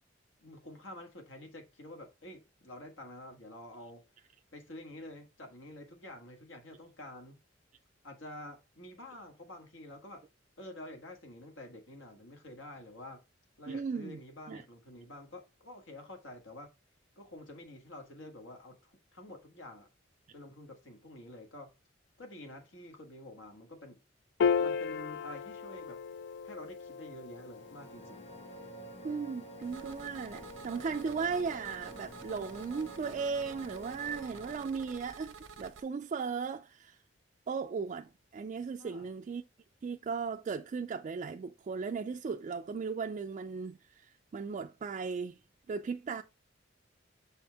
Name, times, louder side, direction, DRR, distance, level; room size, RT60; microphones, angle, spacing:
voice 1, 0.4-4.0 4.5-7.4 8.0-10.2 10.6-13.2 13.6-16.7 17.2-19.9 20.3-21.7 22.2-24.0 24.6-26.0 26.4-28.3 38.8-39.1, left 1 dB, 80° left, 1.5 m, -48 dB
voice 2, 13.7-14.2 14.5-14.6 29.0-37.0 37.5-39.4 39.8-45.4 45.7-46.2, right 5 dB, 40° right, 0.3 m, -37 dB
Piano, 24.4-31.0, left 6 dB, 65° left, 0.3 m, -36 dB
sound 1, 27.3-35.1, right 1 dB, 35° left, 1.5 m, -49 dB
sound 2, 29.6-35.8, right 5 dB, 85° right, 0.7 m, -50 dB
7.0 x 4.3 x 3.4 m
head